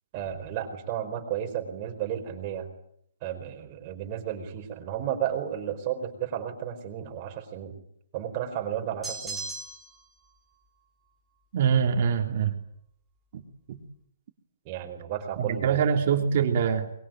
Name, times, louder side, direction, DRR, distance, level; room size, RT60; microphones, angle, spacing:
voice 1, 0.1-2.7 3.2-7.7 8.1-9.4 14.6-15.8, right 10 dB, 25° right, 4 dB, 4.9 m, -33 dB
sound 1, 9.0-10.0, right 3 dB, 5° right, 4.1 m, -36 dB
voice 2, 11.5-12.6 13.3-13.4 13.7-13.8 15.4-16.9, right 7 dB, 40° right, 3 dB, 3.3 m, -24 dB
24.5 x 22.5 x 9.3 m, 0.71 s
hypercardioid pair, 170°, 0 cm